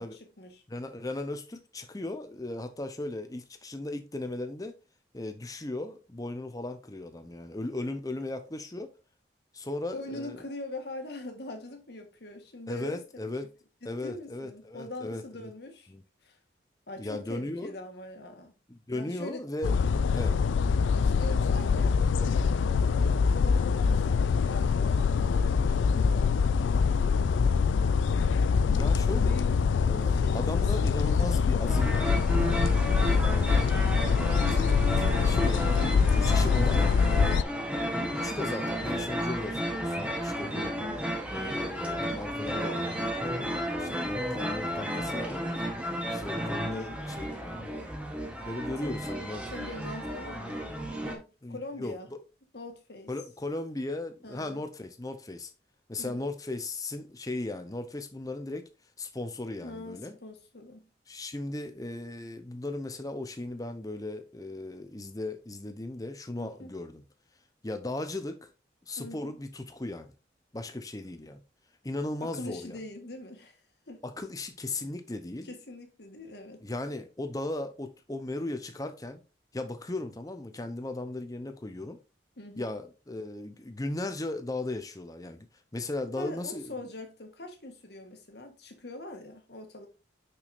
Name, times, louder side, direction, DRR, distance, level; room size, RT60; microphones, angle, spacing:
voice 1, 0.0-0.6 9.9-13.3 13.8-15.9 16.2-16.4 16.9-18.5 18.9-19.4 21.0-26.9 29.2-29.5 30.1-31.0 33.0-33.4 37.0-37.4 40.5-40.9 46.6-47.0 47.6-47.7 48.8-49.0 49.5-50.7 51.0-52.1 52.5-53.1 54.2-54.6 56.0-56.3 59.6-60.9 66.3-66.7 69.0-69.4 72.2-73.6 73.9-74.0 75.4-76.6 82.4-82.7 86.2-89.9, left 2 dB, 60° left, 1.5 m, -43 dB
voice 2, 0.7-4.7 5.1-8.9 9.5-10.4 12.7-13.5 13.8-15.5 15.9-16.0 17.0-17.7 18.7-19.7 20.2-20.4 28.7-29.4 29.8-32.4 32.8-33.9 34.5-36.8 37.8-40.7 41.3-45.6 46.1-47.7 48.4-49.4 51.4-52.2 53.1-55.5 55.9-58.7 59.0-60.2 61.1-67.0 67.6-68.5 68.9-70.1 70.5-71.4 71.8-72.8 74.0-75.5 76.6-79.2 79.5-82.0 82.6-85.5 85.7-86.7, left 2 dB, 20° left, 0.7 m, -37 dB
sound 1, 19.6-37.4, left 5 dB, 85° left, 0.4 m, -24 dB
sound 2, 31.7-51.2, equal, 5° right, 1.1 m, -33 dB
6.1 x 6.0 x 2.6 m
head